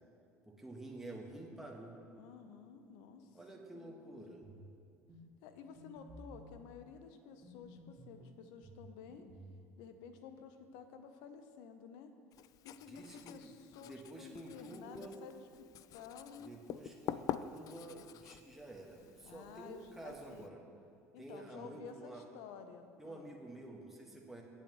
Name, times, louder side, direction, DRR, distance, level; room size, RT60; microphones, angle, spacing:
voice 1, 0.5-2.0 3.3-4.5 12.9-13.5 13.8-15.2 16.4-20.6 21.2-22.2 23.0-24.4, right 2 dB, 5° right, -1 dB, 1.7 m, -50 dB
voice 2, 2.2-3.4 3.7-4.3 5.4-9.2 9.8-12.1 12.6-15.7 15.9-16.5 19.2-20.5 21.1-23.3, left 6 dB, 65° left, 8 dB, 0.9 m, -52 dB
sound 1, 4.4-4.7 5.1-5.3 5.8-6.5 7.4-8.2 8.6-9.6, right 1 dB, 35° right, 2.4 m, -54 dB
Writing, 12.3-20.5, left 10 dB, 45° left, 0.4 m, -47 dB
17.5 x 8.9 x 3.2 m, 2.3 s
figure-of-eight pair, 65°, 8 cm